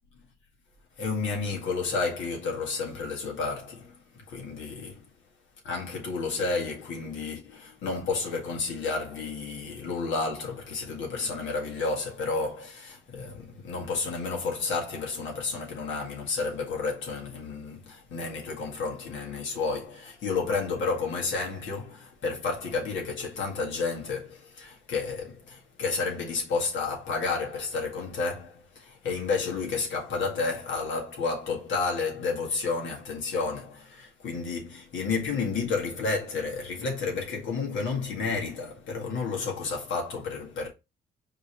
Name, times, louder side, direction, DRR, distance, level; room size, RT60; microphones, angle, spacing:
voice 1, 1.0-5.1 5.6-40.7, left 4 dB, 75° left, 1.9 m, -31 dB
5.1 x 3.1 x 3.4 m
cardioid pair, 90°, 20 cm